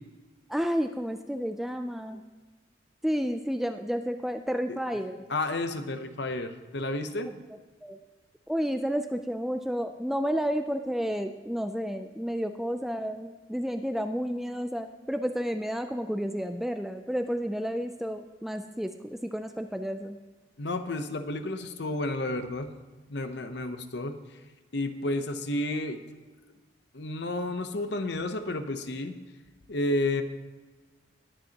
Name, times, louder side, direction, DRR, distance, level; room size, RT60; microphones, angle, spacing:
voice 1, 0.5-2.2 3.0-5.3 7.3-7.4 7.8-8.0 8.5-20.2, equal, ahead, 7 dB, 0.3 m, -31 dB
voice 2, 5.3-7.3 20.6-22.7 23.1-24.2 24.7-26.0 26.9-29.1 29.7-30.2, left 2 dB, 60° left, 9 dB, 0.7 m, -31 dB
20.0 x 7.8 x 2.9 m, 1.3 s
head